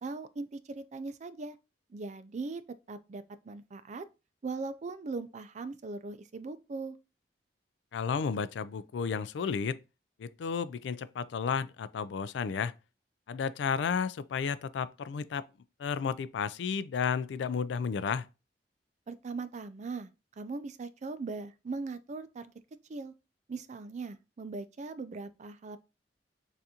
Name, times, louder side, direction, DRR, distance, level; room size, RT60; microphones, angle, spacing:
voice 1, 0.0-1.6 1.9-2.6 2.9-4.1 4.4-6.9 19.1-20.1 20.4-22.5 22.9-23.1 23.5-25.8, right 3 dB, 40° right, 0.4 m, -39 dB
voice 2, 7.9-9.8 10.2-12.7 13.3-15.5 15.8-18.3, left 6 dB, 85° left, 0.3 m, -32 dB
6.7 x 2.5 x 2.8 m
head